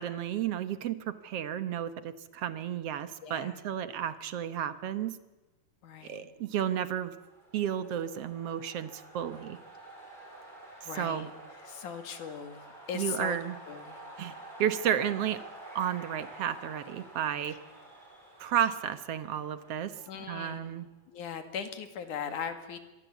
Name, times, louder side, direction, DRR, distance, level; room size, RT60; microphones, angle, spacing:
voice 1, 0.0-5.2 6.0-7.1 7.5-9.6 11.0-11.3 12.9-13.6 14.2-14.3 14.6-15.4 15.8-17.6 18.4-20.0 20.3-20.9, right 10 dB, 60° right, 12 dB, 1.9 m, -32 dB
voice 2, 3.2-3.6 5.8-6.3 10.8-11.3 11.6-13.4 13.7-14.0 17.5-17.6 20.1-20.8 21.1-22.8, left 7 dB, 80° left, 8 dB, 3.6 m, -39 dB
sound 1, 6.9-20.6, right 1 dB, 15° right, 4.7 m, -50 dB
26.0 x 22.5 x 8.3 m, 1.1 s
omnidirectional pair, 3.5 m